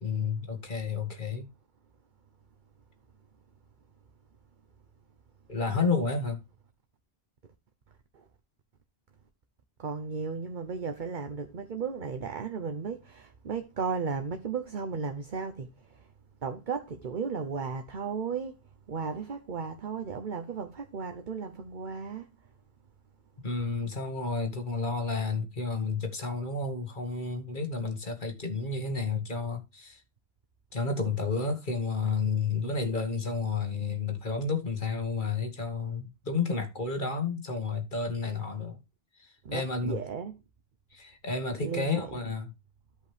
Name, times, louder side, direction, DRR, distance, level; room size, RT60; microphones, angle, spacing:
voice 1, 0.0-1.5 5.5-6.4 23.4-30.0 30.7-38.8 39.2-40.0 40.9-42.5, left 4 dB, 50° left, 1.9 m, -31 dB
voice 2, 9.8-16.1 16.4-18.5 18.9-22.3 39.4-40.3 41.6-42.0, right 5 dB, 50° right, 1.0 m, -35 dB
13.5 x 5.4 x 3.4 m
omnidirectional pair, 1.1 m